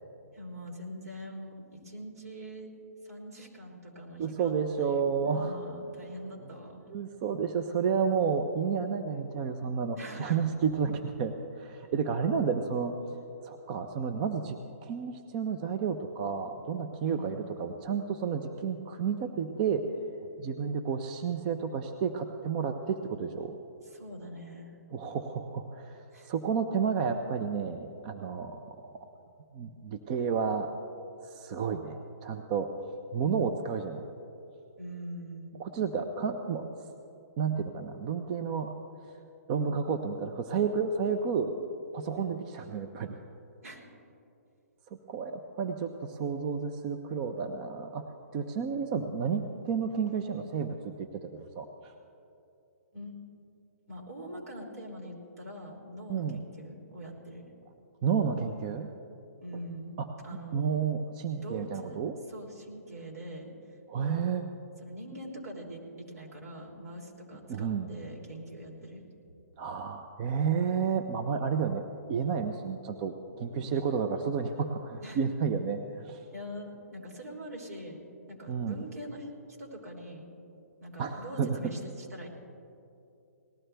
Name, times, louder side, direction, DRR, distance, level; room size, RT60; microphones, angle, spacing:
voice 1, 0.3-2.7 3.0-4.5 4.8-6.8 9.9-10.7 17.0-17.4 23.8-24.7 26.1-26.3 34.8-35.5 42.1-42.3 43.6-43.8 52.9-53.2 53.9-57.4 59.4-60.7 61.4-62.0 62.3-63.5 64.0-64.2 64.8-69.0 75.0-75.2 76.3-78.0 78.3-79.3 79.6-80.3 80.8-82.3, equal, 75° right, -1 dB, 3.2 m, -43 dB
voice 2, 4.2-5.6 6.9-12.9 13.4-19.9 20.4-23.6 24.9-29.1 29.5-30.7 31.2-32.7 33.1-34.0 35.6-36.7 37.4-38.7 39.1-39.2 39.5-41.5 41.9-43.2 45.1-48.0 48.3-51.9 56.1-56.4 58.0-58.9 60.0-60.1 60.5-62.1 63.9-64.4 67.5-67.9 69.6-76.2 78.5-78.8 81.0-81.6, right 6 dB, 35° right, 6 dB, 0.6 m, -31 dB
19.0 x 14.0 x 3.4 m, 2.7 s
hypercardioid pair, 145°, 9 cm